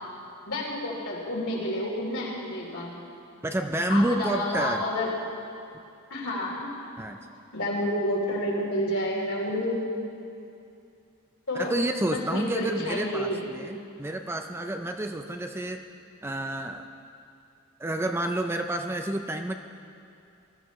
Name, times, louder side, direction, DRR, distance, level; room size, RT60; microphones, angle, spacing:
voice 1, 0.5-2.9 3.9-5.1 6.1-6.7 7.5-9.8 11.5-11.7 12.0-13.4, left 1 dB, 75° left, -4 dB, 3.2 m, -29 dB
voice 2, 3.4-4.8 7.0-7.2 11.5-15.8 16.2-16.9 17.8-19.5, right 1 dB, 10° right, 6 dB, 0.4 m, -29 dB
20.0 x 13.0 x 3.1 m, 2.6 s
head